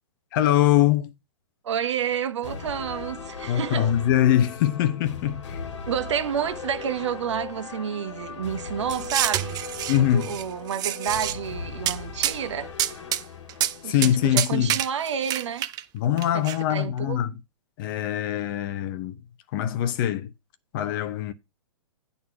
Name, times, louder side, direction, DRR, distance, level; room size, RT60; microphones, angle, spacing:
voice 1, 0.3-1.1 3.5-5.6 9.9-10.4 13.8-14.8 15.9-17.3 17.8-19.2 19.5-20.3 20.7-21.3, left 11 dB, 45° left, 1.1 m, -23 dB
voice 2, 1.6-3.9 5.9-9.6 10.0-12.7 13.8-15.7 16.3-17.2, right 8 dB, 75° right, 1.3 m, -30 dB
sound 1, 2.4-14.4, left 5 dB, 75° left, 1.9 m, -38 dB
sound 2, 8.9-10.4 10.7-11.3 11.9-12.0 12.2-12.4 12.8-13.2 13.5-13.7 14.0-14.1 14.4-15.8 16.2-16.6, right 12 dB, 25° right, 0.6 m, -27 dB
9.5 x 4.2 x 5.9 m
hypercardioid pair, 125°, 15 cm